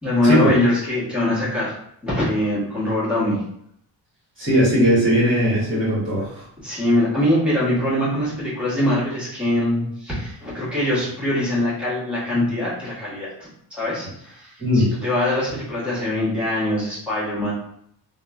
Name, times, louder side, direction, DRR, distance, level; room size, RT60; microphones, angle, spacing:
voice 1, 0.0-3.4 6.6-17.5, left 1 dB, 5° right, -9 dB, 1.1 m, -23 dB
voice 2, 4.4-6.4 14.6-14.9, equal, 30° right, -8 dB, 1.0 m, -18 dB
3.0 x 2.1 x 2.3 m, 0.71 s
cardioid pair, 150°, 44 cm